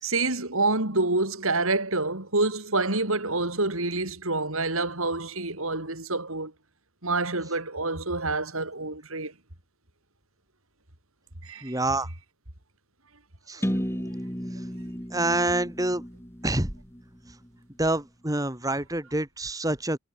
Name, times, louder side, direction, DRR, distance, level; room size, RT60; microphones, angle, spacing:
voice 1, 0.0-6.5 7.0-9.3 11.4-11.8, right 2 dB, 70° right, 5.2 m, -27 dB
voice 2, 11.6-12.1 13.5-13.7 15.1-16.0 16.4-16.7 17.8-20.0, right 2 dB, 15° right, 2.3 m, -27 dB
sound 1, 13.6-17.5, equal, 10° left, 6.4 m, -34 dB
head